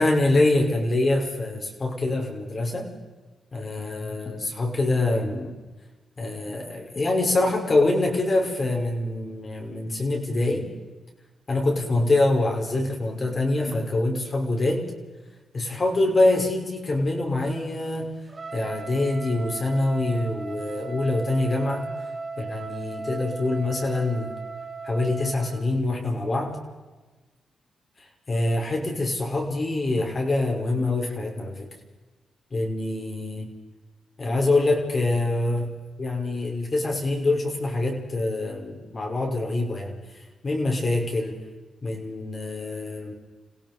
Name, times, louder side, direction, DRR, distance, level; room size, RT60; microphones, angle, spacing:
voice 1, 0.0-2.9 3.5-5.6 6.2-10.7 11.5-14.9 15.5-18.2 18.5-21.9 22.4-24.3 24.8-26.6 28.3-31.7 32.5-33.5 34.2-35.7 36.0-40.0 40.4-41.4 41.8-43.1, left 2 dB, 45° left, 1 dB, 5.7 m, -25 dB
Trumpet, 18.3-25.6, right 4 dB, 40° right, 2.7 m, -36 dB
28.0 x 17.0 x 5.4 m, 1.2 s
cardioid pair, 60°, 0 cm